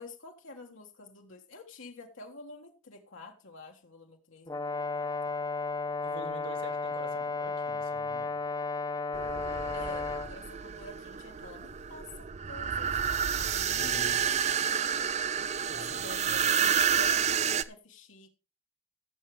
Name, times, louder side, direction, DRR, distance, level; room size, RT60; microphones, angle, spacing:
voice 1, 0.0-5.3 9.7-12.9 13.3-15.0 15.7-18.3, left 2 dB, 75° left, 1.5 m, -49 dB
Brass instrument, 4.5-10.3, left 3 dB, 20° left, 0.8 m, -33 dB
voice 2, 6.0-8.4 13.4-14.3 15.7-16.5, right 2 dB, 70° right, 1.9 m, -47 dB
sound 1, 9.1-17.6, right 7 dB, 35° right, 0.5 m, -30 dB
17.5 x 7.4 x 3.2 m
head